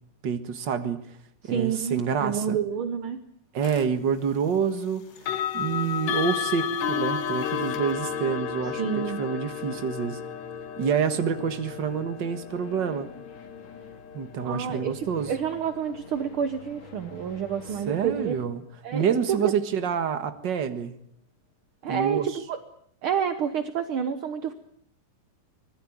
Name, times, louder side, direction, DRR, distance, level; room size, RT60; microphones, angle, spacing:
voice 1, 0.2-1.0 1.4-2.6 3.5-5.0 5.3-10.2 10.8-13.1 14.1-15.3 17.9-18.6 18.9-20.9 21.9-22.3, right 7 dB, 45° right, 9 dB, 1.7 m, -27 dB
voice 2, 1.4-3.2 8.8-9.2 14.4-18.3 18.8-19.0 19.3-19.5 21.8-22.6 23.0-24.5, right 8 dB, 60° right, 9 dB, 1.4 m, -29 dB
sound 1, 3.6-3.9 5.2-16.0, left 8 dB, 80° left, 2.9 m, -33 dB
sound 2, 6.7-18.5, left 4 dB, 55° left, 3.1 m, -49 dB
25.5 x 19.5 x 8.7 m, 0.67 s
omnidirectional pair, 3.8 m